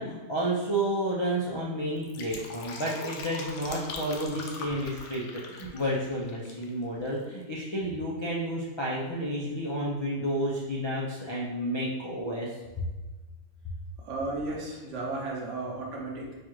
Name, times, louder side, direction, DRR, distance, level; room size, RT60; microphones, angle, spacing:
voice 1, 0.0-12.5, right 1 dB, 45° left, -5 dB, 0.3 m, -31 dB
Fill (with liquid), 1.9-6.7 7.0-7.1, left 3 dB, 65° left, 0.9 m, -41 dB
voice 2, 14.0-16.3, right 2 dB, 60° right, -2 dB, 1.1 m, -34 dB
4.3 x 2.4 x 4.6 m, 1.2 s
omnidirectional pair, 1.5 m